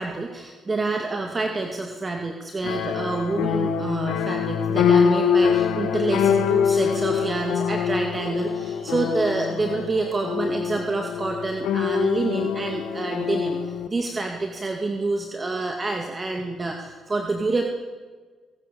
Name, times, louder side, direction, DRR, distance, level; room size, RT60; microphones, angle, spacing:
voice 1, 0.0-17.6, right 3 dB, 30° right, 3 dB, 2.4 m, -27 dB
sound 1, 2.6-13.9, left 7 dB, 90° left, 2.2 m, -24 dB
26.5 x 18.5 x 7.2 m, 1.5 s
cardioid pair, 90°, 0 cm